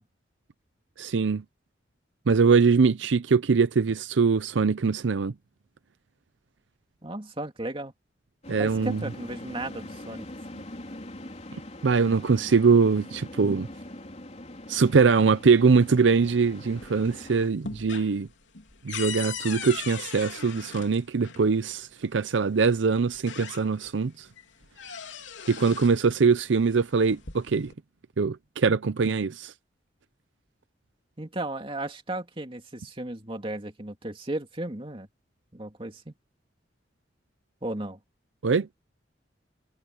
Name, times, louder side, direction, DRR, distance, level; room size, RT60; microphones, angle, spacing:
voice 1, 1.0-1.4 2.3-5.3 8.5-9.0 11.8-13.7 14.7-18.3 18.8-24.3 25.5-27.7 28.2-29.5 38.4-38.7, right 5 dB, 80° right, 0.6 m, -22 dB
voice 2, 7.0-7.9 8.6-10.3 10.5-10.6 31.2-35.1 35.5-36.1 37.6-38.0, right 1 dB, 30° right, 2.7 m, -35 dB
sound 1, 8.4-17.5, left 1 dB, 35° left, 3.6 m, -42 dB
sound 2, 16.5-17.1 17.4-21.5 22.5-22.6 23.1-24.0 24.4-26.0 26.9-27.7, left 6 dB, 85° left, 3.3 m, -39 dB
head